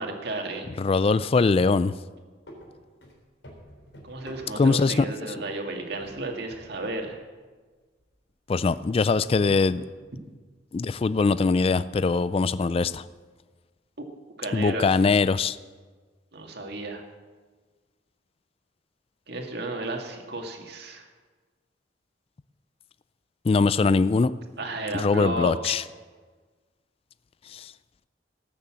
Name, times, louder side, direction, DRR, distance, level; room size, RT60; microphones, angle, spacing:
voice 1, 0.0-0.7 4.0-7.2 14.4-15.1 16.3-17.0 19.3-21.1 24.6-25.8, right 2 dB, 60° right, 3 dB, 2.0 m, -33 dB
voice 2, 0.8-1.9 4.6-4.9 8.5-9.8 10.7-13.0 14.5-15.6 23.5-24.3 24.9-25.8 27.5-27.7, left 4 dB, 30° left, 16 dB, 0.3 m, -22 dB
sound 1, 1.9-2.1 2.5-4.9 5.4-5.7 6.0-7.1 7.4-7.5 8.0-8.1 8.7-10.1 10.8-10.9 11.4-12.4, equal, 85° left, 3.9 m, -48 dB
18.5 x 6.8 x 7.4 m, 1.4 s
head